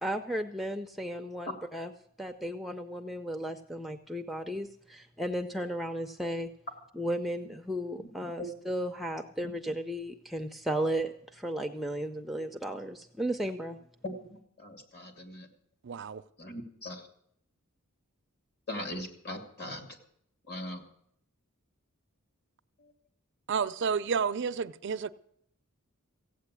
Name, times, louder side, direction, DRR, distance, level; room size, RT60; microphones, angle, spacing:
voice 1, 0.0-1.9 2.2-6.5 7.0-13.8, right 1 dB, ahead, 0.5 m, -34 dB
voice 2, 14.0-15.5 16.4-17.1 18.7-20.0 20.5-20.8 22.8-22.9, left 1 dB, 50° left, 2.6 m, -40 dB
voice 3, 15.8-16.2 23.5-25.1, right 6 dB, 55° right, 0.5 m, -30 dB
15.5 x 8.5 x 8.3 m
head